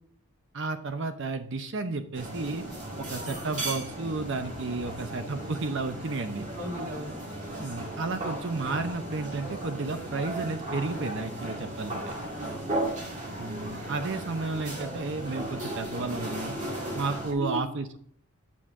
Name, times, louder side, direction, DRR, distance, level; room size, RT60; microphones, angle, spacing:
voice 1, 0.5-2.6 3.0-6.5 7.6-12.1 13.4-16.6 16.9-18.0, right 3 dB, 55° right, 8 dB, 0.7 m, -32 dB
sound 1, 2.1-17.3, right 1 dB, 35° right, 2.1 m, -36 dB
voice 2, 6.5-7.1 12.2-12.7 17.3-17.7, equal, 85° right, 0 dB, 2.1 m, -37 dB
8.6 x 7.4 x 3.6 m, 0.63 s
head